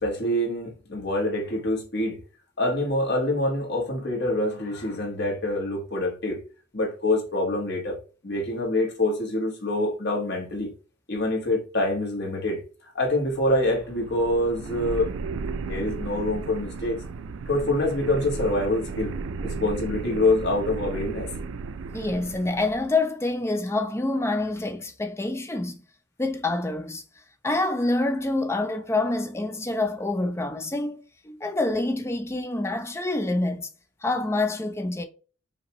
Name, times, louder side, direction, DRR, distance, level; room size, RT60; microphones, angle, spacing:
voice 1, 0.0-2.2 2.6-6.4 6.7-8.0 8.2-10.7 11.1-12.6 12.9-15.1 15.7-17.0 17.5-19.1 19.4-21.3, left 1 dB, 55° left, 1.5 m, -25 dB
sound 1, 13.2-22.8, right 4 dB, 80° right, 0.4 m, -35 dB
voice 2, 21.9-25.8 26.2-27.0 27.4-33.7 34.0-35.0, left 2 dB, 15° left, 0.5 m, -27 dB
5.2 x 2.8 x 3.0 m
head